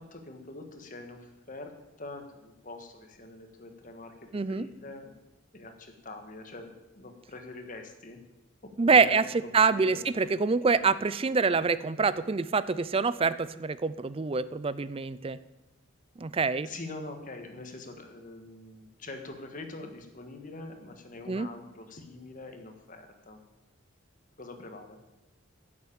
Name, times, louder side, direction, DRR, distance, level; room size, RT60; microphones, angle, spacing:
voice 1, 0.0-5.1 5.5-8.2 8.6-9.4 9.7-10.7 16.6-23.4 24.4-25.0, left 2 dB, 40° left, 5 dB, 1.6 m, -44 dB
voice 2, 4.3-4.7 8.8-9.2 9.5-15.4 16.2-16.7 21.3-21.5, right 4 dB, 25° right, 16 dB, 0.4 m, -25 dB
10.5 x 7.4 x 8.7 m, 1.0 s
head